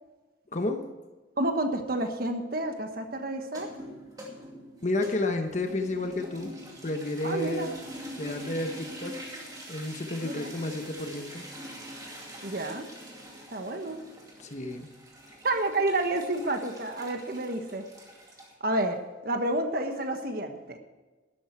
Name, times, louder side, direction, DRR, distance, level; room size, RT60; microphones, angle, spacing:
voice 1, 0.5-0.9 4.8-6.5 6.8-7.7 8.2-9.3 9.7-11.4 14.4-14.9, left 2 dB, 40° left, 5 dB, 1.1 m, -31 dB
voice 2, 1.4-3.7 7.2-7.8 10.2-10.5 12.4-12.9 13.5-14.0 15.4-17.9 18.6-19.0 19.2-20.8, right 2 dB, 50° right, 6 dB, 1.3 m, -30 dB
sound 1, 3.4-18.5, equal, 20° right, 2.4 m, -44 dB
12.5 x 12.0 x 4.6 m, 1.3 s
head